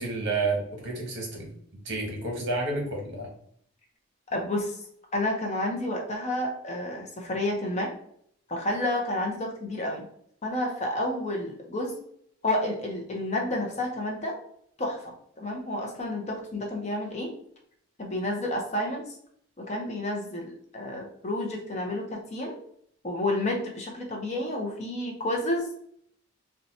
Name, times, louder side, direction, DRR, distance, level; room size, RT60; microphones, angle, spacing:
voice 1, 0.0-1.5 1.8-3.3, right 3 dB, 50° right, -1 dB, 1.2 m, -30 dB
voice 2, 4.3-4.8 5.1-7.9 8.5-10.0 10.4-11.9 12.4-14.4 14.8-17.3 18.0-19.2 19.6-22.6 23.0-25.7, left 1 dB, 30° left, 0 dB, 0.5 m, -30 dB
2.7 x 2.2 x 4.0 m, 0.66 s
head